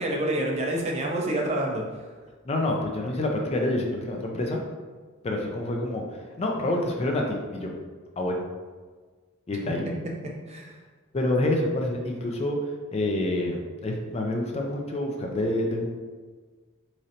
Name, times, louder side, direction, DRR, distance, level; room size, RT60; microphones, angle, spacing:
voice 1, 0.0-1.8 10.5-10.8, right 1 dB, 30° right, 0 dB, 0.5 m, -27 dB
voice 2, 2.4-4.6 5.2-7.7 8.2-8.4 9.5-9.9 11.1-12.6 12.9-15.9, left 1 dB, 30° left, 1 dB, 0.4 m, -27 dB
3.8 x 3.1 x 2.8 m, 1.4 s
head